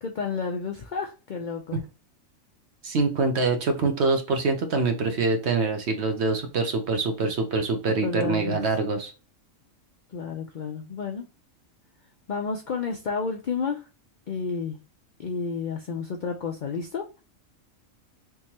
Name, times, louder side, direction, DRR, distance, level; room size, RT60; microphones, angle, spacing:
voice 1, 0.0-1.8 8.0-8.6 10.1-11.2 12.3-13.8 14.3-14.8 15.2-17.2, left 5 dB, 65° left, 3 dB, 0.4 m, -31 dB
voice 2, 2.8-9.1, right 3 dB, 60° right, 5 dB, 1.0 m, -25 dB
3.5 x 3.1 x 2.8 m, 0.32 s
omnidirectional pair, 1.4 m